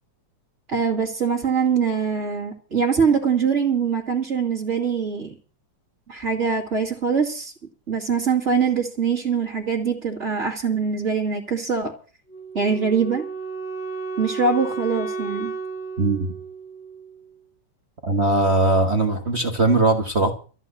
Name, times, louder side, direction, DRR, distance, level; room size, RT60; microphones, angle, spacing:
voice 1, 0.7-5.3 6.1-7.5 7.9-11.9 12.5-13.2 14.2-15.5, right 6 dB, 25° right, 2.0 m, -23 dB
Wind instrument woodwind instrument, 12.3-17.3, right 4 dB, 30° left, 1.4 m, -33 dB
voice 2, 16.0-16.3 18.0-20.3, right 2 dB, 40° right, 0.9 m, -20 dB
13.5 x 7.3 x 9.8 m
omnidirectional pair, 3.5 m